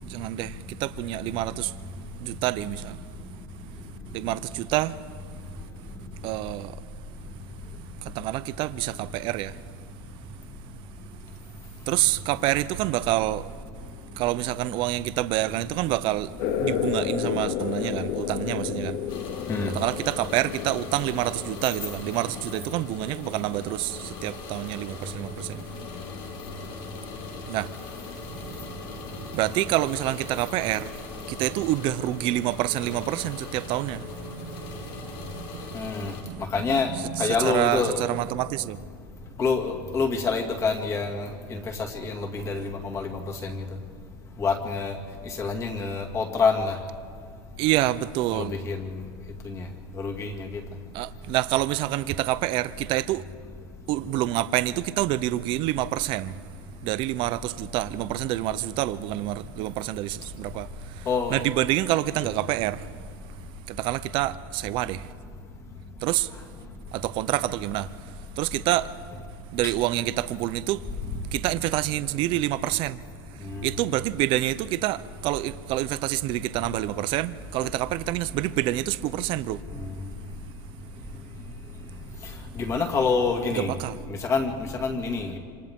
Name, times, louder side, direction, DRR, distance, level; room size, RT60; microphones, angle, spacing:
voice 1, 0.0-1.7 2.2-3.0 4.1-5.0 6.2-6.8 8.0-9.6 11.9-13.5 14.2-19.0 19.7-25.6 27.5-27.7 28.3-28.7 29.1-30.9 31.3-38.8 47.6-48.6 50.9-53.2 53.9-56.4 56.8-62.9 63.7-65.1 66.0-66.3 66.9-67.9 68.4-68.9 69.5-70.8 71.3-73.0 73.6-79.6 83.5-84.0, right 15 dB, 45° right, 0.7 m, -27 dB
sound 1, 16.4-23.5, left 10 dB, 50° left, 0.9 m, -32 dB
sound 2, 19.1-36.2, left 5 dB, 85° left, 4.2 m, -41 dB
voice 2, 35.7-36.1 36.5-36.9 37.2-38.1 39.4-41.6 42.0-43.6 44.4-45.0 45.4-46.7 48.3-48.9 49.4-49.6 50.0-50.5 61.1-61.3 73.5-73.7 82.6-83.7 84.1-85.4, left 4 dB, 25° left, 2.3 m, -27 dB
27.0 x 26.0 x 3.7 m
supercardioid pair, 150°, 12 cm